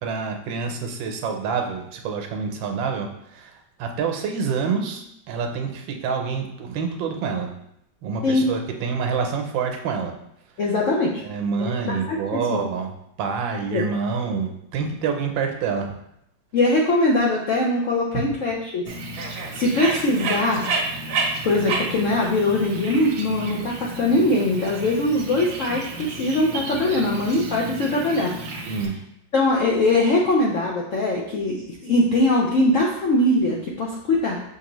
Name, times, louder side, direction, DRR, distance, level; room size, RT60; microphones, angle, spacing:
voice 1, 0.0-7.5 8.0-10.1 11.2-12.9 13.2-15.9 18.1-18.3 28.7-28.9, right 5 dB, 90° right, 4 dB, 1.4 m, -27 dB
voice 2, 10.6-11.2 12.1-12.6 13.7-13.8 16.5-18.9 19.3-20.7 21.4-28.7 29.3-34.4, left 2 dB, 75° left, -2 dB, 0.7 m, -21 dB
Bird, 18.9-28.9, right 3 dB, 60° right, 0.9 m, -31 dB
6.5 x 2.7 x 3.0 m, 0.77 s
omnidirectional pair, 2.0 m